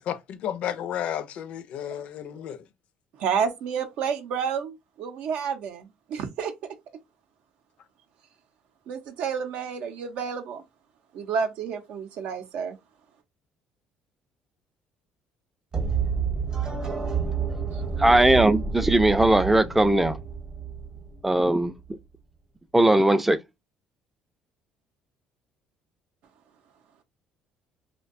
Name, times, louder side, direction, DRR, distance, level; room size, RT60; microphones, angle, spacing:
voice 1, 0.0-2.7, left 10 dB, 65° left, 0.4 m, -32 dB
voice 2, 3.2-6.5 8.9-10.6 11.1-12.7 17.7-17.8, right 6 dB, 70° right, 0.5 m, -30 dB
sound 1, 15.7-21.7, right 6 dB, 35° right, 0.8 m, -29 dB
voice 3, 18.0-20.2 21.2-21.7 22.7-23.4, right 1 dB, 10° right, 0.3 m, -19 dB
2.6 x 2.1 x 2.4 m
cardioid pair, 105°, 2 cm